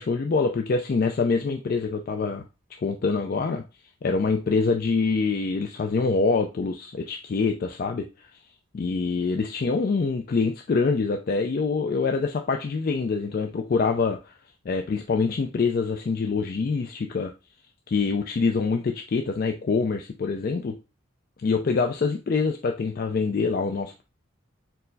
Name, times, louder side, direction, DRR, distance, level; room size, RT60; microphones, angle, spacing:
voice 1, 0.0-2.4 2.8-3.6 4.0-8.3 8.7-14.3 14.7-17.3 17.9-20.8 21.4-24.0, left 4 dB, 45° left, 5 dB, 0.3 m, -25 dB
4.5 x 2.0 x 3.9 m, 0.29 s
head